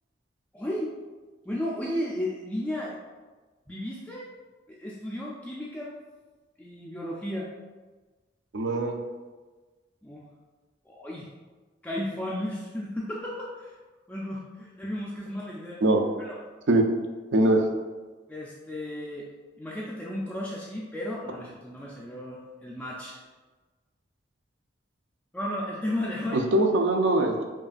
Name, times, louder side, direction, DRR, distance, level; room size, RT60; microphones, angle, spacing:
voice 1, 0.5-0.9 1.5-3.0 3.7-4.3 4.7-6.0 6.6-7.5 10.0-10.2 10.9-11.3 11.8-13.7 14.1-15.8 16.2-16.4 18.3-19.3 19.6-23.2 25.3-26.4, left 1 dB, 10° left, -5 dB, 0.3 m, -34 dB
voice 2, 8.5-9.0 15.8-16.0 16.7-16.8 17.3-17.6 26.3-27.4, right 1 dB, 70° right, 4 dB, 0.5 m, -22 dB
5.3 x 2.4 x 2.4 m, 1.3 s
head